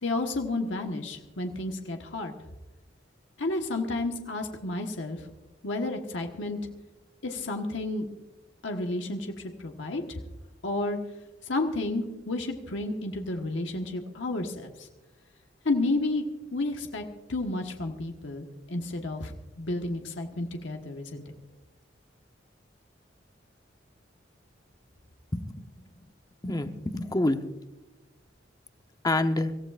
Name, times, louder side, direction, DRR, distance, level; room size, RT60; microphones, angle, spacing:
voice 1, 0.0-2.3 3.4-5.3 5.6-6.6 7.2-8.1 8.6-10.2 10.6-11.0 11.5-14.9 15.6-16.3 16.5-17.0 17.3-21.2, left 2 dB, 85° left, 3 dB, 1.3 m, -31 dB
voice 2, 25.3-25.9 26.4-27.4 29.0-29.5, left 2 dB, 20° left, 8 dB, 0.8 m, -27 dB
25.0 x 15.5 x 2.5 m, 1.1 s
head